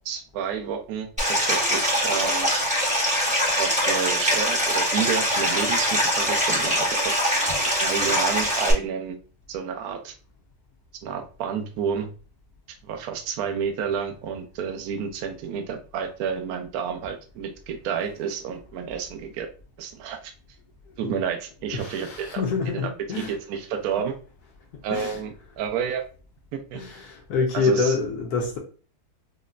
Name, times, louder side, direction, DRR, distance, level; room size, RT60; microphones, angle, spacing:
voice 1, 0.0-2.5 3.6-7.1 7.8-9.2 9.5-10.1 11.0-12.1 12.8-19.5 19.8-20.3 21.0-22.4 22.8-22.9 23.1-24.1 24.8-26.0 26.5-26.8 27.5-27.9, right 7 dB, 75° right, 0.8 m, -30 dB
Stream, 1.2-8.7, equal, 10° right, 0.3 m, -23 dB
voice 2, 21.7-23.3 24.9-25.2 26.7-28.6, left 4 dB, 70° left, 0.9 m, -26 dB
5.1 x 2.2 x 2.4 m
omnidirectional pair, 2.3 m